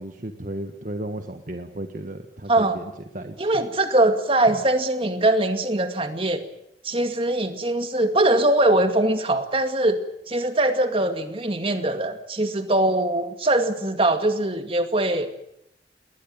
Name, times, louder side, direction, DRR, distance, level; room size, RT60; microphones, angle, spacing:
voice 1, 0.0-3.5, right 1 dB, 45° right, 6 dB, 1.5 m, -34 dB
voice 2, 2.5-2.8 3.4-6.4 6.8-10.0 10.3-15.3, right 1 dB, 30° right, 8 dB, 2.2 m, -22 dB
21.0 x 19.5 x 9.2 m, 0.77 s
head